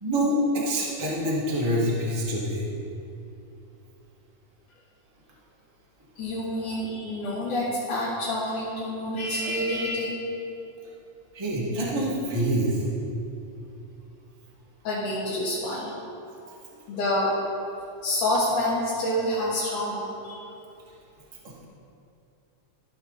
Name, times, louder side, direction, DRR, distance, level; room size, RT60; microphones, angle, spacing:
voice 1, 0.0-2.7 11.3-12.7, equal, 25° right, -6 dB, 0.6 m, -26 dB
voice 2, 6.2-10.2 14.8-15.9 16.9-17.3 18.0-20.5, left 1 dB, 70° left, -10 dB, 3.0 m, -28 dB
14.5 x 6.1 x 4.0 m, 2.7 s
omnidirectional pair, 3.9 m